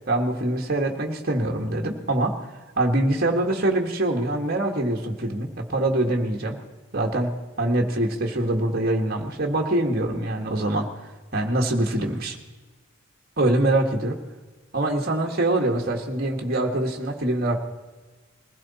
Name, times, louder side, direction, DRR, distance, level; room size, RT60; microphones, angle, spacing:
voice 1, 0.1-2.5 2.8-6.6 6.9-10.9 11.3-12.4 13.4-14.2 14.7-17.6, right 1 dB, 45° right, 1 dB, 1.7 m, -24 dB
21.5 x 15.5 x 4.2 m, 1.2 s
head